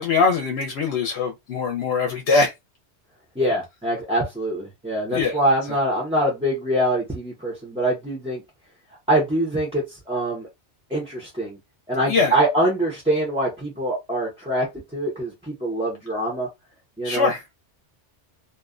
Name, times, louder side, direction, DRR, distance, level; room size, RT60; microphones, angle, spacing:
voice 1, 0.0-2.5 5.1-5.4 12.1-12.4 17.0-17.4, left 4 dB, 70° left, 0.8 m, -22 dB
voice 2, 3.4-8.4 9.1-10.5 10.9-11.6 11.9-14.7 14.9-16.5 17.0-17.3, right 1 dB, 10° right, 0.5 m, -24 dB
2.5 x 2.1 x 2.4 m
omnidirectional pair, 1.2 m